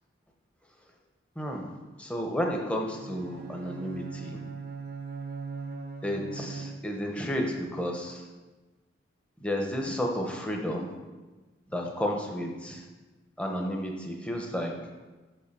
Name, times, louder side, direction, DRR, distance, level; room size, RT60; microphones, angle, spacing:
voice 1, 1.4-1.7 2.0-4.4 6.0-8.2 9.4-10.9 11.7-12.8 13.4-14.7, equal, 5° left, 1 dB, 0.8 m, -32 dB
Bowed string instrument, 2.9-7.2, right 5 dB, 50° right, 0.5 m, -40 dB
5.6 x 5.6 x 6.8 m, 1.2 s
head